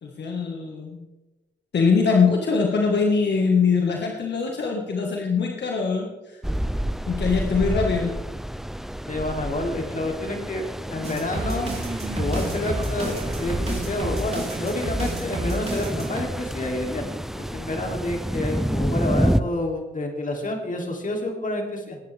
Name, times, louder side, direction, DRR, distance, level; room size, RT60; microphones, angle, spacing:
voice 1, 0.0-1.1 1.7-6.4 7.1-8.1, left 5 dB, 75° left, 0 dB, 1.8 m, -22 dB
sound 1, 6.4-19.4, equal, ahead, 0.6 m, -29 dB
voice 2, 9.1-10.6 10.9-11.7 12.2-22.0, left 1 dB, 50° left, 2 dB, 3.1 m, -29 dB
sound 2, 11.0-16.2, right 1 dB, 35° right, 4.1 m, -30 dB
20.0 x 9.9 x 3.5 m, 1.1 s
cardioid pair, 65°, 18 cm